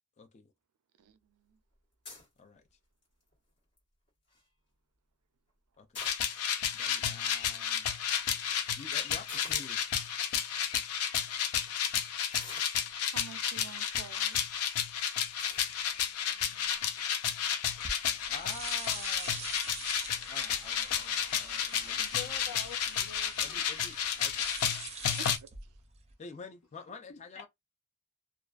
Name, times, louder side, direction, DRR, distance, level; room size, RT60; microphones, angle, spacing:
voice 1, 0.2-0.5 2.4-2.6 5.8-6.0 6.7-7.9 8.8-9.8 18.3-19.4 19.8-19.9 20.3-22.3 23.4-24.5 26.2-27.5, left 4 dB, 30° left, 0.3 m, -48 dB
sound 1, 2.0-2.4 3.0-3.3 3.8-3.9 4.1-4.4 5.7-6.6 7.4-7.5 7.7-7.8 9.3-9.7 10.4-10.5 11.0-11.2 12.3-13.2 14.0-14.3 14.7-14.8 15.4-15.7, left 2 dB, 50° left, 1.3 m, -48 dB
sound 2, 6.0-25.4, left 8 dB, 90° left, 0.5 m, -32 dB
voice 2, 12.8-14.4 25.2-25.5, right 7 dB, 90° right, 0.4 m, -48 dB
sound 3, 17.7-26.1, right 5 dB, 30° right, 0.5 m, -45 dB
voice 3, 22.0-23.6 27.1-27.2, left 6 dB, 75° left, 1.1 m, -46 dB
2.4 x 2.3 x 2.3 m
head